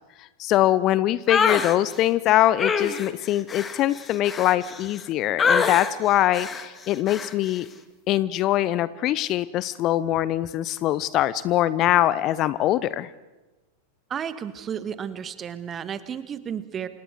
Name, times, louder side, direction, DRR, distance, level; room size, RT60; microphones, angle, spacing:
voice 1, 0.4-7.7 8.1-13.1, left 13 dB, 35° left, 18 dB, 0.7 m, -23 dB
sound 1, 1.3-1.8 2.6-5.0 5.4-5.9 6.3-6.7 7.1-7.3, left 5 dB, 20° left, 1.8 m, -25 dB
voice 2, 14.1-16.9, right 8 dB, 25° right, 13 dB, 1.6 m, -32 dB
30.0 x 26.5 x 4.7 m, 1.1 s
figure-of-eight pair, 90°, 0 cm